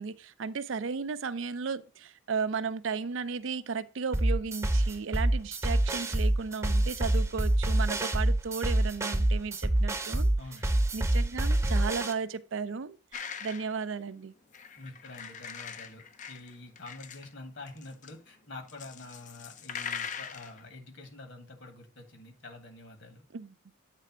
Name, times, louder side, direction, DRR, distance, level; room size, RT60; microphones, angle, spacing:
voice 1, 0.0-10.3 10.9-14.3 23.3-23.6, right 5 dB, 70° right, 0.5 m, -35 dB
sound 1, 4.1-12.1, right 1 dB, 15° right, 0.7 m, -26 dB
voice 2, 10.4-10.8 14.8-23.3, left 2 dB, 60° left, 1.9 m, -47 dB
sound 2, 13.1-13.8 14.5-17.3 17.7-18.1 18.7-20.7, left 7 dB, 40° left, 0.5 m, -41 dB
8.2 x 3.4 x 6.0 m
head